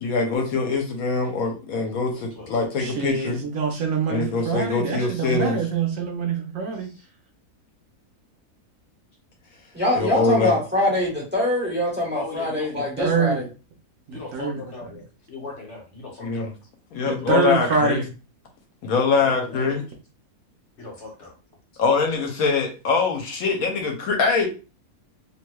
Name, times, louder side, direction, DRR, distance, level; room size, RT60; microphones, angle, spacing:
voice 1, 0.0-3.4 4.1-5.6 10.0-10.6 16.2-16.5 16.9-18.0 18.8-19.8 21.8-24.5, left 4 dB, 70° left, 3 dB, 1.1 m, -23 dB
voice 2, 2.1-2.5 6.8-7.1 12.1-13.4 14.1-16.5 17.2-17.3 18.9-19.6 20.8-21.3, left 3 dB, 55° left, -1 dB, 1.1 m, -39 dB
voice 3, 2.8-6.9 13.0-13.4 14.1-14.6 17.1-18.1, right 5 dB, 65° right, 2 dB, 1.0 m, -25 dB
voice 4, 9.7-13.5, left 1 dB, 10° right, -3 dB, 1.1 m, -24 dB
3.1 x 2.8 x 2.2 m, 0.33 s
omnidirectional pair, 1.6 m